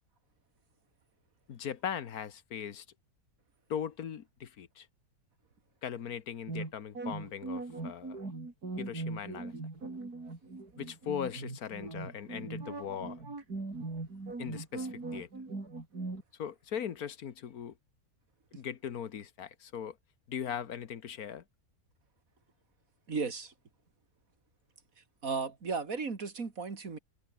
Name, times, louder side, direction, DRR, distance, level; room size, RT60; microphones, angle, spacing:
voice 1, 1.5-2.8 3.7-4.9 5.8-8.2 8.8-9.5 10.8-13.2 14.4-15.3 16.4-17.7 18.5-20.0 20.3-21.4, left 8 dB, 75° left, 1.6 m, -39 dB
sound 1, 6.5-16.2, right 3 dB, 85° right, 5.0 m, -40 dB
voice 2, 23.1-23.5 25.0-27.0, right 4 dB, 60° right, 2.8 m, -35 dB
omnidirectional pair, 1.6 m